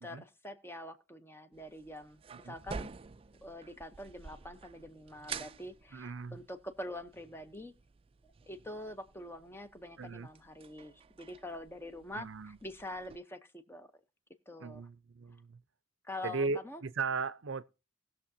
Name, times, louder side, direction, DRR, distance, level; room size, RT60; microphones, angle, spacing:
voice 1, 0.0-2.9 3.4-7.7 8.5-13.9 14.5-14.9 16.0-16.8, left 1 dB, 10° left, 0.8 m, -45 dB
sound 1, 1.5-13.2, right 5 dB, 25° right, 0.4 m, -50 dB
voice 2, 5.9-6.4 10.0-10.3 12.1-12.6 14.6-15.6 16.2-17.6, right 4 dB, 70° right, 0.6 m, -37 dB
19.0 x 6.6 x 2.7 m
head